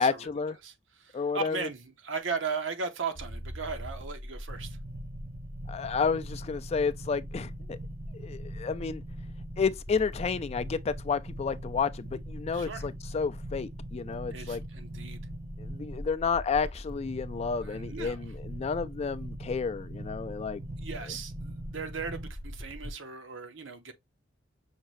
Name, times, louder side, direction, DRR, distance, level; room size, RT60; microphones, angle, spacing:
voice 1, 0.0-0.6 1.1-1.7 5.7-7.8 8.1-9.0 9.6-14.6 15.6-20.6, left 5 dB, 35° left, 0.3 m, -31 dB
voice 2, 0.6-4.8 12.5-12.9 14.3-15.2 17.6-18.2 20.8-23.9, right 5 dB, 80° right, 0.8 m, -37 dB
sound 1, 3.1-22.9, equal, 30° right, 0.7 m, -40 dB
5.8 x 2.7 x 3.1 m
head